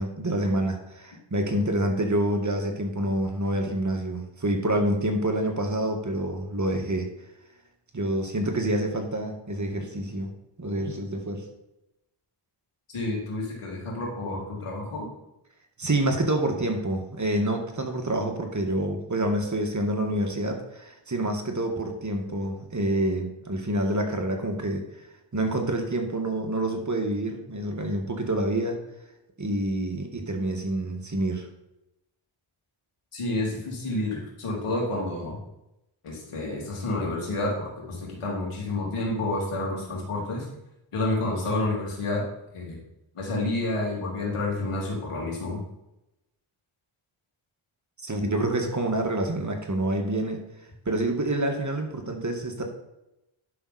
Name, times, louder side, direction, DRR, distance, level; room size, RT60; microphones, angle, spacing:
voice 1, 0.0-7.1 7.9-10.3 10.6-11.4 15.8-24.8 25.3-28.8 29.4-31.4 48.0-50.4 50.9-52.6, right 1 dB, 35° right, 3 dB, 1.9 m, -27 dB
voice 2, 12.9-15.1 33.1-35.4 36.0-40.5 40.9-42.2 42.5-42.8 43.1-45.6, left 2 dB, 85° left, -2 dB, 3.2 m, -29 dB
11.0 x 6.1 x 4.3 m, 0.89 s
cardioid pair, 60°, 50 cm